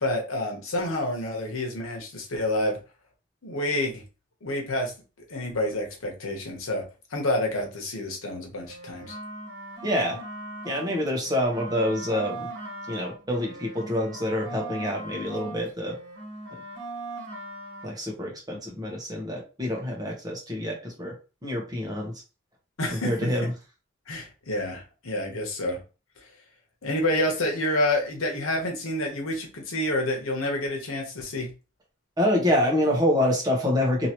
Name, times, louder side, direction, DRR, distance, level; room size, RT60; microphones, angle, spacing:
voice 1, 0.0-2.8 3.4-4.0 4.4-4.9 5.3-6.8 7.1-9.2 22.8-23.1 24.1-25.8 26.8-31.5, left 1 dB, 90° left, 1 dB, 1.0 m, -28 dB
sound 1, 8.7-10.9 11.2-15.6 15.9-17.9, right 2 dB, 65° right, 1.6 m, -39 dB
voice 2, 9.8-10.2 10.6-12.5 12.9-16.0 17.8-21.1 21.4-22.1 23.0-23.5 32.2-34.1, left 1 dB, 20° right, -1 dB, 1.0 m, -26 dB
2.9 x 2.8 x 2.9 m, 0.32 s
head